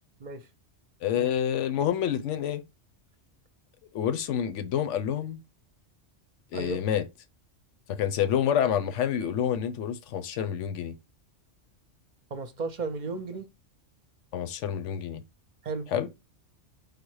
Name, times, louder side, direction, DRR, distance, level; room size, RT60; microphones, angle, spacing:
voice 1, 1.0-2.6 3.9-5.4 6.5-7.0 7.9-10.9 14.3-15.2 15.9-16.1, left 9 dB, 85° left, 1.0 m, -28 dB
voice 2, 12.3-13.5 15.6-15.9, right 3 dB, 50° right, 0.6 m, -34 dB
5.0 x 2.1 x 4.6 m
omnidirectional pair, 1.2 m